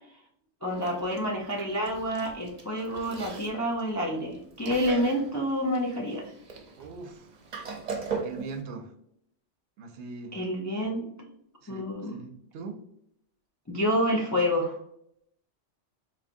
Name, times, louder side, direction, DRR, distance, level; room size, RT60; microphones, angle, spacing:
voice 1, 0.6-6.3 10.3-11.0 11.7-12.1 13.7-14.8, equal, 25° left, -1 dB, 0.3 m, -28 dB
Chewing mastication, 0.7-8.6, right 4 dB, 45° right, 0.7 m, -40 dB
voice 2, 6.8-7.3 8.2-8.9 9.8-10.4 11.6-12.8, right 4 dB, 70° right, 5 dB, 0.9 m, -41 dB
4.2 x 2.9 x 2.5 m, 0.73 s
omnidirectional pair, 1.2 m